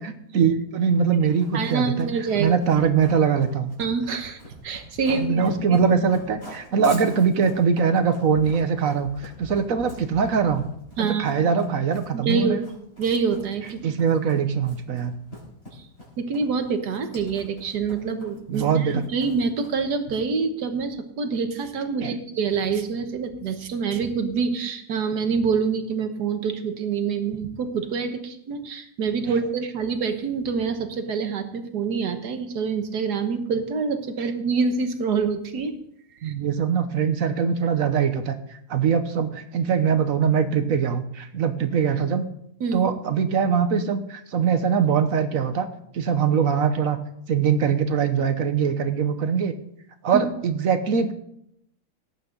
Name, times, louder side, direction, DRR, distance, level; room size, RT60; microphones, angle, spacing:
voice 1, 0.0-2.1 2.4-3.7 5.1-10.7 11.0-12.6 13.8-15.1 18.5-19.0 22.0-22.2 29.3-29.4 34.2-34.3 36.2-38.4 38.7-42.2 42.7-45.7 45.9-47.0 47.3-49.5 50.0-51.1, right 6 dB, 60° right, 9 dB, 1.3 m, -22 dB
Run, 1.3-19.9, left 1 dB, 40° left, 5.3 m, -43 dB
voice 2, 1.5-2.5 3.8-4.4 4.6-5.8 11.0-11.3 12.1-12.6 13.0-13.8 16.2-35.7 36.2-36.3 42.6-42.8 50.1-50.2, right 5 dB, 85° right, 7 dB, 1.8 m, -26 dB
18.0 x 8.9 x 3.9 m, 0.74 s
omnidirectional pair, 1.7 m